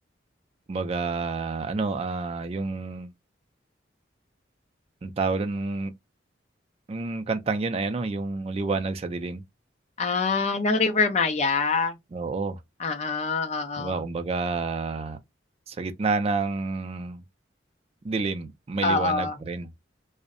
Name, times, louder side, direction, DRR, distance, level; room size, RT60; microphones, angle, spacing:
voice 1, 0.7-3.1 5.0-5.9 6.9-9.4 12.1-12.6 13.8-15.2 15.7-17.2 18.0-19.7, right 3 dB, 30° right, 0.3 m, -29 dB
voice 2, 10.0-12.0 12.8-14.0 18.8-19.4, left 4 dB, 35° left, 0.5 m, -25 dB
2.5 x 2.0 x 2.4 m
head